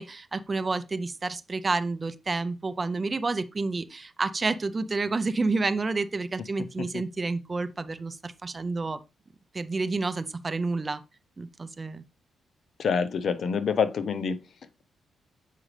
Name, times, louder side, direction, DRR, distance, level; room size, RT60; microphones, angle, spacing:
voice 1, 0.0-9.0 9.5-11.0 11.4-12.0, right 3 dB, 25° right, 0.5 m, -29 dB
voice 2, 12.8-14.4, left 6 dB, 55° left, 0.7 m, -27 dB
7.5 x 5.0 x 3.2 m
cardioid pair, 115°, 0 cm